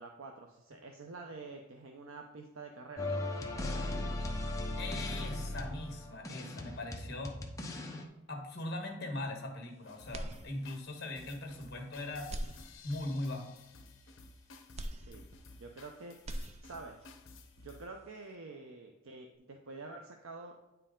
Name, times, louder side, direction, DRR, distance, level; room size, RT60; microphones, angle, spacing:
voice 1, 0.0-3.3 14.9-15.2 15.6-16.2 16.6-17.0 17.6-20.5, right 3 dB, 85° right, 3 dB, 0.6 m, -48 dB
sound 1, 3.0-8.0, left 1 dB, 15° left, 0.7 m, -37 dB
voice 2, 4.8-7.4 8.3-12.3 12.8-13.5, left 2 dB, 55° left, 3 dB, 1.3 m, -40 dB
sound 2, 9.8-17.9, left 3 dB, 75° left, 0.8 m, -55 dB
sound 3, 10.1-11.0 11.5-11.6 12.2-13.3 14.8-15.9 16.1-17.1, right 1 dB, 30° right, 0.4 m, -43 dB
9.2 x 4.5 x 3.7 m, 0.99 s
head